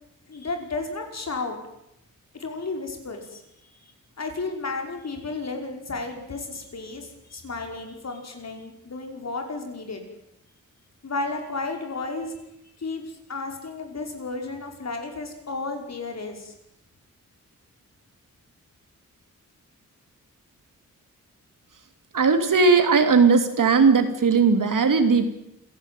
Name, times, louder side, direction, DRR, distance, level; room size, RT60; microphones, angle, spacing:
voice 1, 0.3-1.6 2.3-3.4 4.2-10.0 11.0-12.3 12.8-16.5, left 3 dB, 55° left, 4 dB, 5.3 m, -33 dB
voice 2, 22.1-25.3, right 4 dB, 80° right, 7 dB, 3.1 m, -18 dB
27.5 x 16.5 x 9.3 m, 0.82 s
wide cardioid pair, 140°, 32 cm